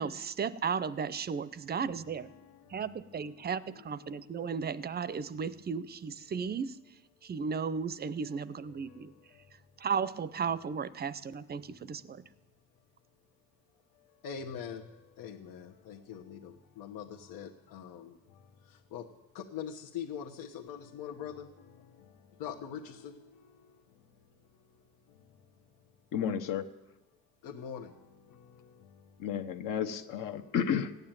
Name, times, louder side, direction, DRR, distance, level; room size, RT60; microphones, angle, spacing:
voice 1, 0.0-2.3 2.7-6.8 7.2-9.1 9.8-12.2, right 6 dB, 25° right, 17 dB, 0.6 m, -35 dB
voice 2, 2.2-2.5 14.2-14.8 15.2-16.5 16.8-18.0 18.9-19.0 19.3-21.4 22.4-23.1 27.4-27.9, left 8 dB, 80° left, 0 dB, 1.3 m, -42 dB
voice 3, 26.1-26.7 29.2-30.9, left 8 dB, 60° left, 6 dB, 1.1 m, -32 dB
15.0 x 9.7 x 9.0 m, 0.98 s
cardioid pair, 125°, 36 cm